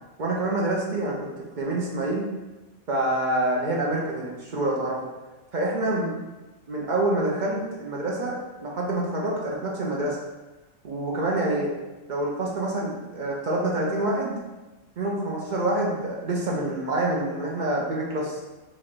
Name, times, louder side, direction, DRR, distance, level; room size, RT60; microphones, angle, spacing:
voice 1, 0.2-1.3 1.6-2.2 2.9-5.0 5.5-6.1 6.7-10.2 10.8-11.7 12.1-14.4 15.0-18.4, right 1 dB, 55° right, -3 dB, 0.5 m, -26 dB
3.2 x 2.5 x 4.3 m, 1.1 s
omnidirectional pair, 1.4 m